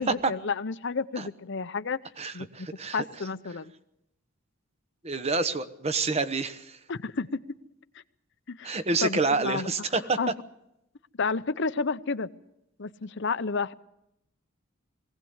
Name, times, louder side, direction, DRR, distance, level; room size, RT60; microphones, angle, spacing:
voice 1, 0.0-2.0 2.3-2.7 2.9-3.7 6.9-7.4 7.9-8.0 8.5-9.7 10.2-10.3 11.2-12.3 12.8-13.7, left 4 dB, 60° left, 13 dB, 0.7 m, -31 dB
voice 2, 2.2-3.0 5.0-6.8 8.6-10.2, right 3 dB, 30° right, 11 dB, 1.0 m, -28 dB
22.0 x 17.0 x 8.0 m, 0.85 s
head